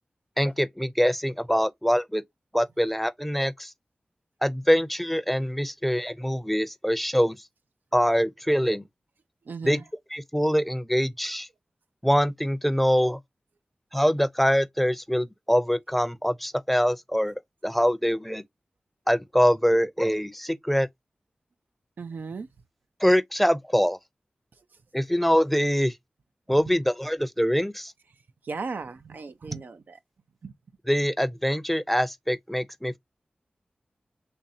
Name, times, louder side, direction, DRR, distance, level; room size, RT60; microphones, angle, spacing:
voice 1, 0.4-2.2 2.5-3.7 4.4-7.4 7.9-8.8 9.6-9.8 10.1-11.5 12.0-13.2 13.9-18.4 19.1-20.9 23.0-24.0 24.9-25.9 26.5-27.9 30.9-33.0, equal, 5° left, 0.6 m, -24 dB
voice 2, 9.5-9.8 22.0-22.5 26.7-26.8 28.4-30.0 30.4-30.5, right 4 dB, 80° right, 0.5 m, -36 dB
4.1 x 3.2 x 2.5 m
wide cardioid pair, 60°, 3 cm